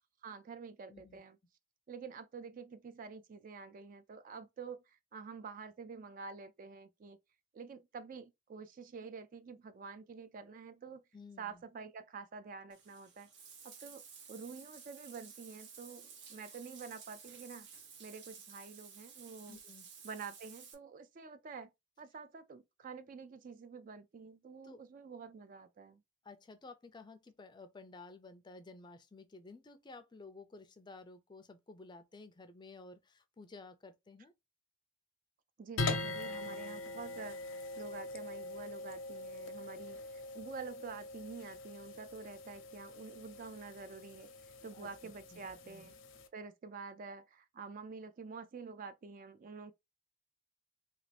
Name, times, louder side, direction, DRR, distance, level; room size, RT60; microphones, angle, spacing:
voice 1, 0.2-1.4 1.9-7.2 7.5-11.0 11.4-13.3 13.6-17.7 18.0-19.6 20.0-21.7 22.0-26.0 35.6-44.3 44.6-46.0 46.3-49.7, right 5 dB, 45° right, 0.3 m, -48 dB
voice 2, 0.9-1.2 11.1-11.6 19.5-19.9 24.6-24.8 26.2-34.3 44.7-45.9, left 3 dB, 25° left, 0.4 m, -54 dB
Bathtub (filling or washing), 12.7-20.7, right 6 dB, 60° right, 0.8 m, -54 dB
sound 1, 35.8-46.3, left 2 dB, 85° left, 0.6 m, -42 dB
2.8 x 2.6 x 3.3 m
head